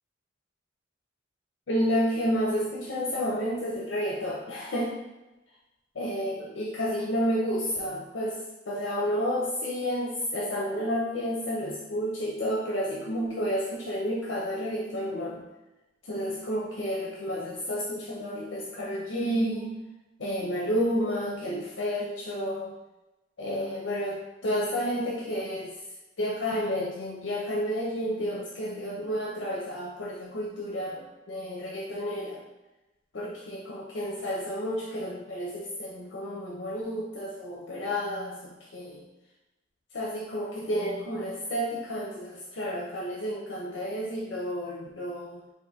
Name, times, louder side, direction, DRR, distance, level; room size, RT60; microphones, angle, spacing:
voice 1, 1.7-4.9 6.0-8.4 8.7-15.4 16.1-19.7 20.2-22.7 23.4-25.7 26.2-32.4 33.1-39.0 39.9-45.4, equal, 75° left, -3 dB, 0.6 m, -31 dB
3.6 x 2.5 x 4.1 m, 1.0 s
head